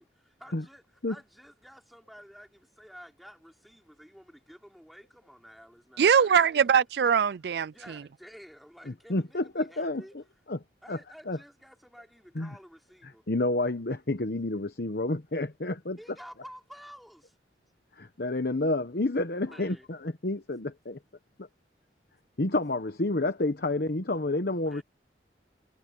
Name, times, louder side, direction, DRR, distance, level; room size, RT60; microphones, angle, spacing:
voice 1, 0.0-6.7 7.7-10.1 10.8-13.2 16.0-17.4 19.4-19.9 24.6-24.8, equal, ahead, 4.0 m, -51 dB
voice 2, 6.0-7.7, right 7 dB, 65° right, 0.4 m, -22 dB
voice 3, 9.1-10.0 10.5-10.6 10.9-11.0 11.3-11.4 12.3-12.6 13.3-16.0 18.0-21.0 22.4-24.8, left 2 dB, 60° left, 1.1 m, -29 dB
head